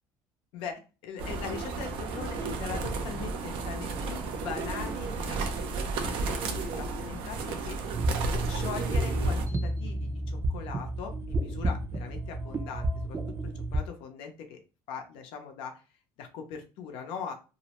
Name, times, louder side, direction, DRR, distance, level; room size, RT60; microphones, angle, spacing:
voice 1, 0.5-7.8 8.5-13.2 13.4-14.6 14.9-15.8 16.2-17.3, left 6 dB, 75° left, 4 dB, 0.6 m, -41 dB
sound 1, 1.2-9.5, right 3 dB, 70° right, 0.5 m, -33 dB
sound 2, 7.9-13.8, right 1 dB, 30° right, 0.5 m, -31 dB
2.6 x 2.0 x 2.9 m, 0.34 s
supercardioid pair, 100°, 9 cm